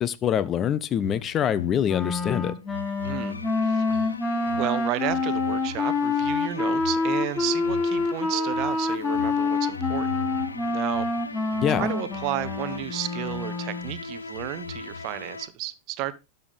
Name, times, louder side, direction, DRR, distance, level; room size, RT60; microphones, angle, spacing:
voice 1, 0.0-2.5 11.6-11.9, left 9 dB, 30° left, 0.5 m, -25 dB
sound 1, 1.0-15.5, left 3 dB, 80° left, 0.5 m, -38 dB
Wind instrument woodwind instrument, 1.9-13.9, left 3 dB, 15° left, 0.9 m, -27 dB
voice 2, 3.0-4.1 4.5-10.2 10.7-11.1 11.8-16.1, right 15 dB, 40° right, 0.7 m, -32 dB
12.0 x 6.8 x 3.5 m
figure-of-eight pair, 90°, 0 cm